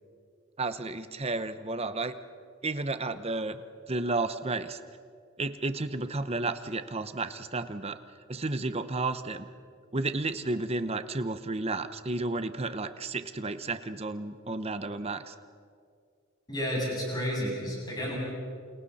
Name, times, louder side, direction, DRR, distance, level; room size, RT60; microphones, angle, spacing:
voice 1, 0.6-2.2 2.6-3.6 3.9-4.8 5.4-8.0 8.3-9.5 9.9-15.3, right 3 dB, 30° right, 11 dB, 0.9 m, -32 dB
voice 2, 16.5-18.1, equal, 20° left, -4 dB, 7.9 m, -31 dB
28.5 x 28.5 x 4.2 m, 2.3 s
head